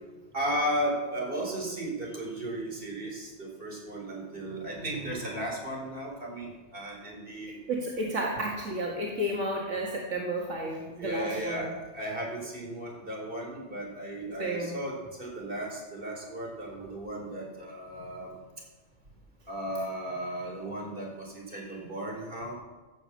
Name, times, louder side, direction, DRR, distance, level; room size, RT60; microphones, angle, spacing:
voice 1, 0.3-7.6 11.0-18.3 19.5-22.5, right 1 dB, 50° right, -1 dB, 4.2 m, -35 dB
voice 2, 7.7-11.7 14.4-14.8, right 1 dB, 85° right, -2 dB, 2.1 m, -32 dB
15.0 x 7.2 x 7.5 m, 1.3 s
omnidirectional pair, 1.2 m